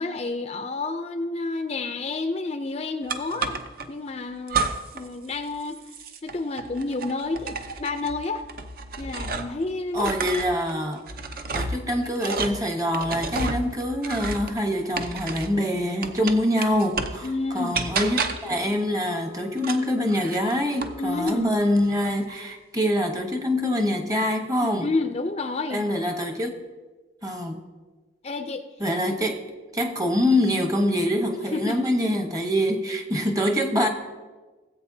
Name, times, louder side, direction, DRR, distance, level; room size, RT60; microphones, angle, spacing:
voice 1, 0.0-3.6 3.9-4.7 4.9-5.8 6.2-8.5 9.0-10.1 17.2-17.8 21.0-21.5 24.8-25.9 28.2-28.6 31.5-31.8, left 3 dB, 35° left, 8 dB, 0.4 m, -29 dB
sound 1, 3.1-3.9 4.5-5.1 5.3-9.6 9.9-15.6 16.0-17.3 17.7-18.6 19.6-21.0 21.3-21.9, right 4 dB, 50° right, 0.6 m, -31 dB
voice 2, 9.9-11.0 11.5-24.9 25.7-26.6 27.2-27.6 28.8-29.4 29.7-33.9, equal, 20° right, 4 dB, 0.9 m, -25 dB
Wind instrument woodwind instrument, 18.3-22.5, left 11 dB, 90° left, 0.7 m, -47 dB
18.0 x 8.1 x 2.7 m, 1.3 s
head